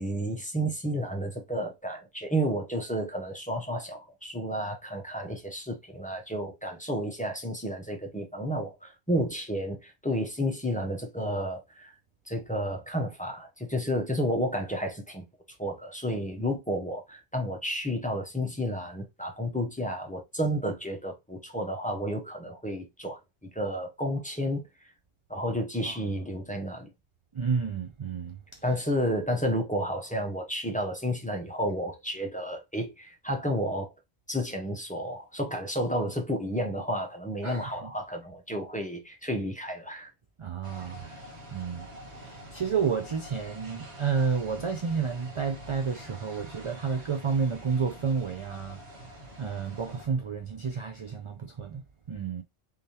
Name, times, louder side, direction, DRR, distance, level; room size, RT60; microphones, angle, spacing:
voice 1, 0.0-11.9 12.3-15.2 15.6-23.2 23.5-24.7 25.3-26.9 28.6-33.9 34.3-40.1, equal, 10° left, 0.7 m, -31 dB
voice 2, 27.3-28.6 37.4-37.9 40.4-52.4, right 5 dB, 55° right, 0.3 m, -31 dB
sound 1, 40.6-50.1, equal, 80° right, 1.6 m, -46 dB
3.5 x 3.3 x 2.8 m
omnidirectional pair, 1.1 m